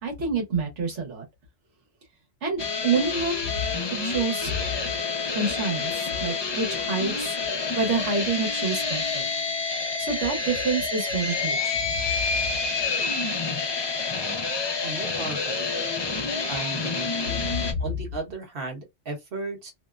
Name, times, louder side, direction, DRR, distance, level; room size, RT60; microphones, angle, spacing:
voice 1, 0.0-1.2 2.4-3.5 4.0-4.5 5.3-5.9 6.2-7.3 7.8-9.3 10.0-11.8 17.3-17.9, right 4 dB, 85° right, 1.3 m, -28 dB
sound 1, 2.6-17.7, left 4 dB, 45° left, 0.3 m, -28 dB
voice 2, 14.8-15.7 16.5-17.1 17.8-19.7, right 3 dB, 55° right, 1.2 m, -35 dB
2.8 x 2.1 x 2.3 m
omnidirectional pair, 1.2 m